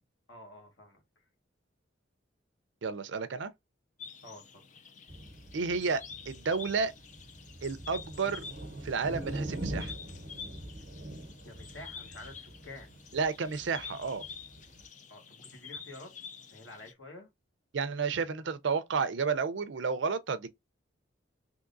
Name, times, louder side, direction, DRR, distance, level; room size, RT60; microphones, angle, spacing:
voice 1, 0.3-1.3 4.2-4.7 11.4-12.9 15.1-16.1 16.5-17.3, left 2 dB, 85° left, 1.6 m, -49 dB
voice 2, 2.8-3.5 5.5-6.9 7.6-8.4 8.8-9.9 13.1-14.2 17.7-20.5, right 5 dB, 75° right, 0.5 m, -31 dB
sound 1, 4.0-16.9, left 6 dB, 40° left, 0.4 m, -48 dB
sound 2, 5.1-14.9, right 1 dB, 50° right, 1.0 m, -43 dB
3.6 x 2.9 x 2.5 m
head